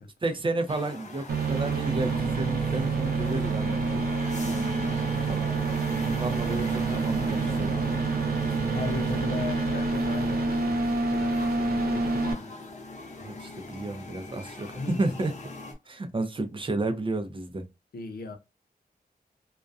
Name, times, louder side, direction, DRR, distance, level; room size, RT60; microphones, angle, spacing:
voice 1, 0.2-5.5 6.1-7.7 13.2-15.3 15.9-17.6, right 2 dB, 35° right, 0.5 m, -32 dB
sound 1, 0.7-15.7, left 2 dB, 45° left, 0.7 m, -43 dB
sound 2, 1.3-12.3, right 3 dB, 80° right, 0.6 m, -27 dB
voice 2, 8.6-12.5 14.8-15.0 17.9-18.4, left 4 dB, 80° left, 0.6 m, -38 dB
2.3 x 2.1 x 2.5 m
wide cardioid pair, 110°, 16 cm